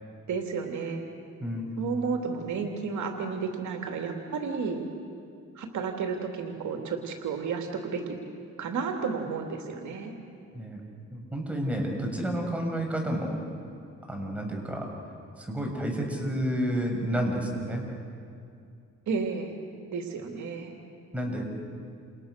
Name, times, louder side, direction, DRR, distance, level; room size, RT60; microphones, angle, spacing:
voice 1, 0.3-1.0 1.8-4.8 5.5-8.2 8.6-10.1 19.1-19.5 19.9-20.8, right 5 dB, 70° right, 2 dB, 3.0 m, -32 dB
voice 2, 11.1-13.4 14.1-14.9 15.4-17.8 21.1-21.4, equal, 5° right, 0 dB, 7.1 m, -30 dB
29.0 x 29.0 x 6.8 m, 2.5 s
cardioid pair, 90°, 30 cm